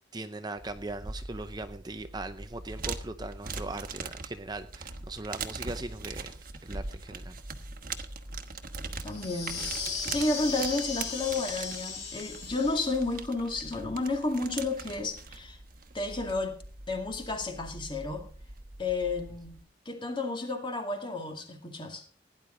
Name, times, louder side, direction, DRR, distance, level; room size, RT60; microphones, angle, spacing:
voice 1, 0.1-6.4 6.6-7.4, right 2 dB, 20° right, 0.6 m, -39 dB
sound 1, 0.6-19.6, right 4 dB, 50° right, 1.3 m, -41 dB
voice 2, 9.0-9.6 10.0-15.6 15.9-16.6 16.9-18.2 18.8-19.6 19.9-22.0, left 3 dB, 25° left, 2.1 m, -31 dB
sound 2, 9.1-13.1, left 5 dB, 70° left, 6.4 m, -37 dB
17.0 x 10.5 x 3.8 m
head